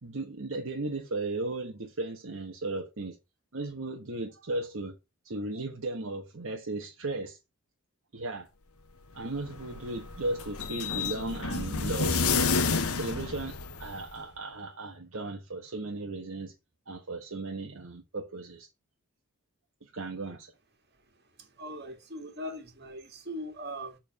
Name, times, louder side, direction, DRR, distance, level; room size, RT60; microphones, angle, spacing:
voice 1, 0.0-3.2 3.5-5.0 5.2-7.4 8.1-8.5 9.1-12.5 12.9-16.5 16.9-18.7 19.8-20.5, right 2 dB, 65° right, 1.2 m, -36 dB
sound 1, 9.1-14.2, left 4 dB, 85° left, 1.1 m, -30 dB
voice 2, 21.4-24.0, equal, 50° right, 1.8 m, -40 dB
7.0 x 4.6 x 5.3 m
head